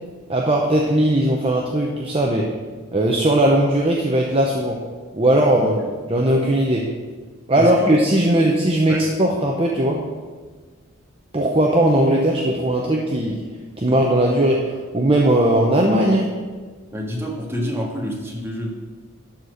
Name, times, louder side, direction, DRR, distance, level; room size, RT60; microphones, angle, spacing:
voice 1, 0.3-2.5 2.9-4.8 5.1-5.7 6.1-6.8 7.5-10.0 11.3-13.4 13.8-16.3, right 1 dB, 25° right, -1 dB, 0.8 m, -18 dB
voice 2, 5.5-5.9 7.5-7.9 8.2-8.4 8.9-9.0 16.9-18.7, equal, 10° right, -2 dB, 1.6 m, -28 dB
12.0 x 4.3 x 6.4 m, 1.4 s
head